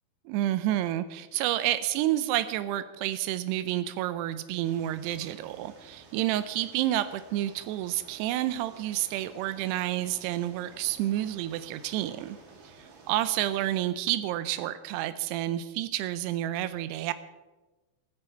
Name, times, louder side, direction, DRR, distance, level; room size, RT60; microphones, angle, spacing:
voice 1, 0.3-12.4 12.6-17.1, right 13 dB, 90° right, 13 dB, 2.4 m, -29 dB
sound 1, 4.6-13.8, right 4 dB, 55° right, 3.8 m, -53 dB
17.0 x 14.5 x 4.5 m, 1.2 s
omnidirectional pair, 5.4 m